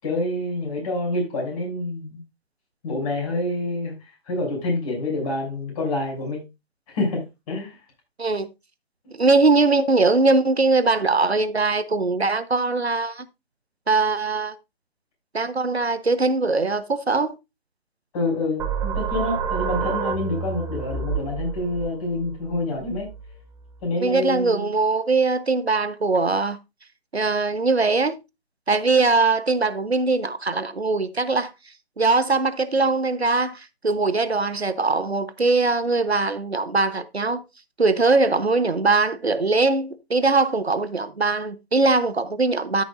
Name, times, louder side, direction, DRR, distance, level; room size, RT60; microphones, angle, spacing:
voice 1, 0.0-2.2 2.8-6.5 6.9-7.8 18.1-23.1 23.8-24.8, left 2 dB, 35° left, 6.6 m, -27 dB
voice 2, 9.1-13.3 13.9-14.5 15.3-17.3 24.0-26.6 27.1-28.2 28.7-31.5 32.0-37.4 37.8-42.8, right 3 dB, 90° right, 1.0 m, -21 dB
sound 1, 18.6-23.9, right 7 dB, 10° right, 0.9 m, -29 dB
13.5 x 6.8 x 2.5 m
figure-of-eight pair, 135°, 31 cm